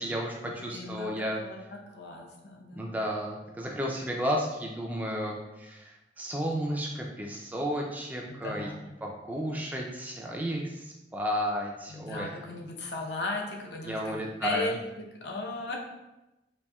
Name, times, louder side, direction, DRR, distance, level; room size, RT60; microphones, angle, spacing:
voice 1, 0.0-1.4 2.8-8.7 9.0-12.3 13.9-14.7, equal, 10° right, -1 dB, 0.3 m, -33 dB
voice 2, 0.6-3.0 8.3-8.9 11.9-15.8, left 2 dB, 80° left, 0 dB, 0.6 m, -37 dB
4.1 x 2.6 x 2.2 m, 0.98 s
head